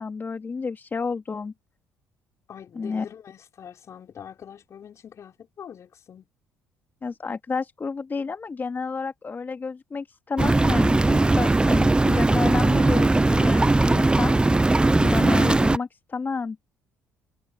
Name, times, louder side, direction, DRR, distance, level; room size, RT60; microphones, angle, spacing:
voice 1, 0.0-1.5 2.8-3.1 7.0-14.4 15.0-16.6, left 4 dB, 30° left, 2.8 m, -30 dB
voice 2, 2.5-6.3, left 8 dB, 50° left, 6.1 m, -44 dB
sound 1, 10.4-15.8, right 2 dB, 15° right, 0.8 m, -19 dB
hypercardioid pair, 55°, 7 cm